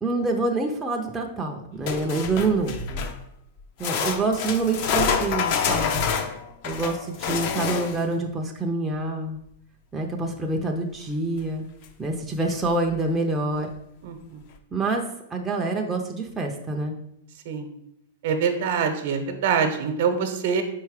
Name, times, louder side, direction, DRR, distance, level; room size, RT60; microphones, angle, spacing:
voice 1, 0.0-3.0 3.8-6.1 6.6-9.4 9.9-11.6 12.0-13.7 14.7-15.0 15.3-17.0, right 3 dB, 10° right, 0 dB, 0.6 m, -26 dB
sound 1, 1.9-3.2 3.8-8.1 11.4-11.5 11.8-11.9 12.6-12.7, left 6 dB, 45° left, 0.6 m, -27 dB
voice 2, 14.0-14.4 17.4-17.7 18.2-20.6, right 6 dB, 60° right, 7 dB, 1.0 m, -24 dB
5.1 x 4.7 x 4.8 m, 0.76 s
supercardioid pair, 150°, 0 cm